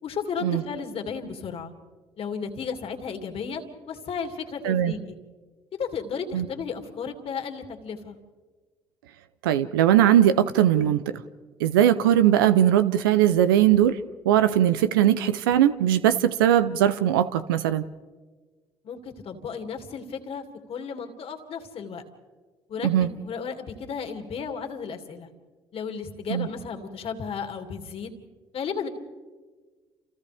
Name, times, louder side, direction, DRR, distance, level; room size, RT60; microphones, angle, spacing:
voice 1, 0.0-1.7 2.2-5.2 5.8-8.2 18.8-22.0 22.7-25.3 25.7-28.1 28.5-28.9, left 6 dB, 60° left, 2.5 m, -34 dB
voice 2, 9.4-11.2 11.6-14.0 14.3-17.8 22.8-23.1 26.3-26.5, right 11 dB, 90° right, 0.6 m, -20 dB
29.0 x 28.5 x 3.5 m
hypercardioid pair, 55°, 11 cm